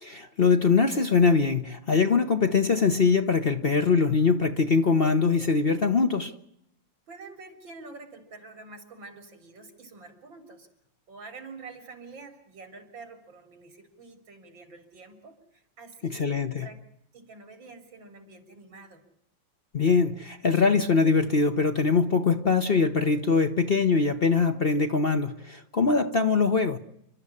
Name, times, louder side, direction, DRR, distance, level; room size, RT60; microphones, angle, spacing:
voice 1, 0.0-6.3 16.0-16.7 19.7-26.8, left 4 dB, 40° left, 1.0 m, -22 dB
voice 2, 7.1-10.7 11.1-16.2 16.6-16.8 17.1-19.0, right 3 dB, 90° right, 4.3 m, -47 dB
28.5 x 12.5 x 9.8 m
omnidirectional pair, 2.0 m